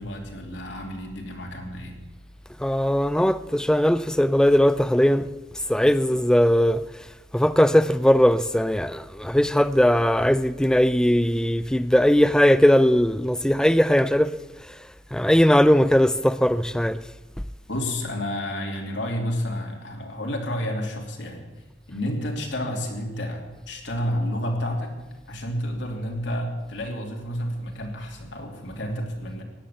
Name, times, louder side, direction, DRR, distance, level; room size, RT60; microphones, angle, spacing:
voice 1, 0.0-2.0 17.7-21.4 21.9-24.9 25.3-29.4, equal, 65° left, 2.9 m, -30 dB
voice 2, 2.6-5.3 5.7-6.8 7.3-14.3 15.1-17.0, equal, 5° left, 0.4 m, -19 dB
16.5 x 10.5 x 7.2 m
head